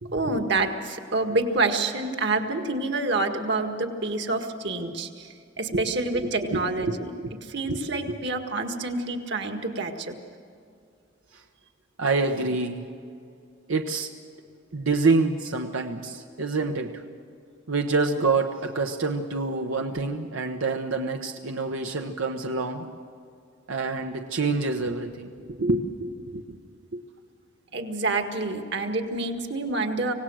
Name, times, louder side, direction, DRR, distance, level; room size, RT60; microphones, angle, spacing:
voice 1, 0.1-7.1 7.4-10.2 27.7-30.1, right 3 dB, 60° right, 5 dB, 1.8 m, -27 dB
voice 2, 6.5-7.3 7.7-7.8 11.3-11.4 12.0-12.9 13.7-14.1 14.7-17.0 17.7-22.9 23.7-26.6 26.9-27.0, right 3 dB, 90° right, 3 dB, 1.1 m, -27 dB
26.0 x 18.0 x 6.3 m, 2.4 s
head